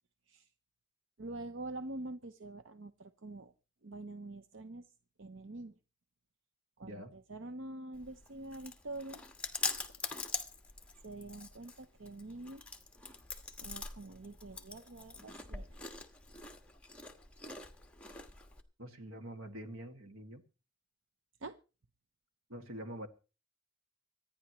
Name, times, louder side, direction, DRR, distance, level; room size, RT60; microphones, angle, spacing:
voice 1, 1.2-3.5 3.8-4.9 5.2-5.7 6.8-9.2 11.0-12.6 13.6-15.7 21.4-21.6, right 2 dB, 65° right, 9 dB, 0.8 m, -45 dB
voice 2, 6.8-7.2 18.8-20.4 22.5-23.1, right 1 dB, 85° right, 6 dB, 2.0 m, -45 dB
Chewing mastication, 7.9-18.6, left 4 dB, 5° left, 1.4 m, -44 dB
25.5 x 9.9 x 3.1 m, 0.34 s
head